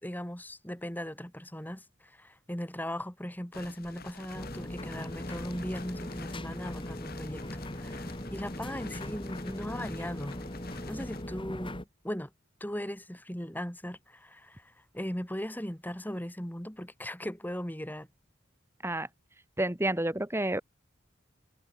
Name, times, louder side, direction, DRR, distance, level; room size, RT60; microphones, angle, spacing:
voice 1, 0.0-7.4 7.8-10.4 10.9-12.3 12.6-18.1, equal, 10° left, 3.2 m, -38 dB
sound 1, 3.5-11.2, left 4 dB, 50° left, 4.6 m, -49 dB
sound 2, 4.3-11.8, left 1 dB, 25° left, 2.8 m, -39 dB
voice 2, 19.6-20.6, right 1 dB, 10° right, 2.8 m, -29 dB
head